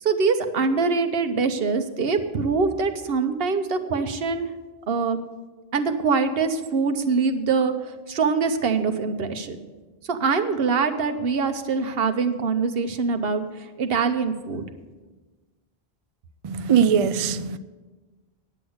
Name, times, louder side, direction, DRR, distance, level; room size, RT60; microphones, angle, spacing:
voice 1, 0.0-4.5 4.9-5.2 5.7-7.7 8.1-9.6 10.1-14.6, right 4 dB, 70° right, 8 dB, 1.1 m, -24 dB
voice 2, 16.4-17.6, right 7 dB, 50° right, 12 dB, 0.4 m, -21 dB
9.8 x 7.9 x 7.8 m, 1.3 s
omnidirectional pair, 1.0 m